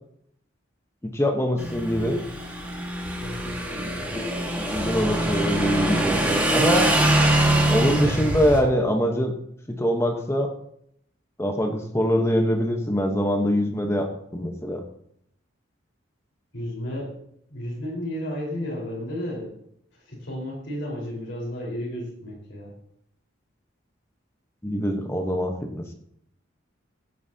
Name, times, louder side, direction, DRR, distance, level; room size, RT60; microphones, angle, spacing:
voice 1, 1.0-2.2 4.1-4.3 4.6-6.9 7.7-9.3 9.7-10.5 11.4-14.8 24.6-25.9, equal, 15° left, 3 dB, 1.0 m, -24 dB
Motorcycle / Engine, 1.6-8.6, right 1 dB, 10° right, 1.7 m, -23 dB
voice 2, 3.2-4.2 16.5-17.1 17.5-19.5 19.9-22.7, left 1 dB, 70° left, -2 dB, 4.4 m, -33 dB
16.0 x 9.2 x 2.8 m, 0.71 s
head